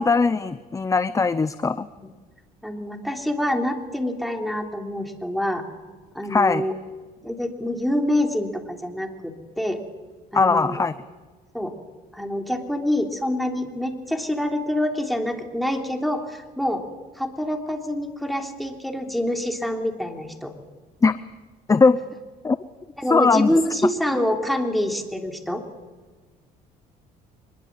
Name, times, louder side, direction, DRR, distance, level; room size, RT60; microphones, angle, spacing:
voice 1, 0.0-1.9 6.3-6.6 10.3-10.9 21.0-21.2 21.7-22.0 22.4-22.6 23.1-23.5 24.1-24.2, left 4 dB, 20° left, 14 dB, 0.7 m, -19 dB
voice 2, 2.6-5.6 6.1-6.7 7.2-9.8 10.3-10.8 11.5-11.7 12.1-16.8 17.2-20.5 23.0-25.6, left 1 dB, ahead, 3 dB, 3.2 m, -26 dB
24.5 x 21.5 x 7.5 m, 1.4 s
cardioid pair, 110°, 17 cm